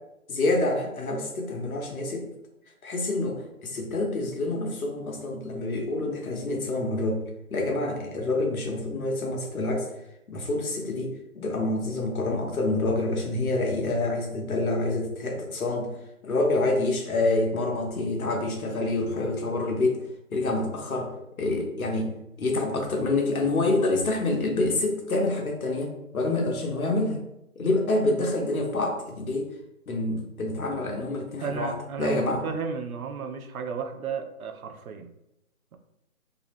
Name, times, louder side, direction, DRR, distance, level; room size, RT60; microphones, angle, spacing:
voice 1, 0.3-2.2 2.8-7.2 7.5-9.9 10.3-15.9 16.2-20.0 20.3-21.1 21.4-27.2 27.6-29.5 29.9-31.7 32.0-32.4, left 2 dB, 80° left, 2 dB, 0.8 m, -27 dB
voice 2, 31.4-35.1, right 5 dB, 80° right, 7 dB, 0.5 m, -33 dB
2.6 x 2.0 x 2.5 m, 0.84 s
figure-of-eight pair, 175°, 42 cm